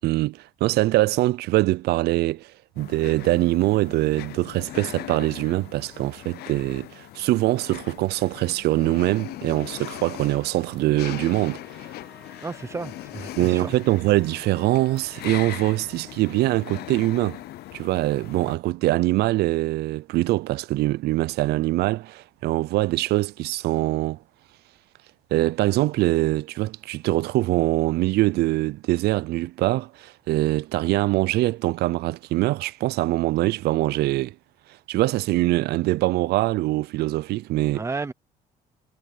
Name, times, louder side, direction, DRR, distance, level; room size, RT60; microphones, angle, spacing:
voice 1, 0.0-11.6 13.4-17.4 17.7-24.2 25.3-34.3 34.9-37.8, right 18 dB, 75° right, 0.5 m, -23 dB
sound 1, 2.8-18.6, left 15 dB, 70° left, 0.7 m, -40 dB
sound 2, 10.9-16.3, equal, 5° left, 2.5 m, -52 dB
voice 2, 12.4-13.7 37.7-38.1, right 4 dB, 15° right, 0.6 m, -32 dB
Thunder / Rain, 18.7-24.1, left 7 dB, 45° left, 7.5 m, -62 dB
cardioid pair, 110°, 17 cm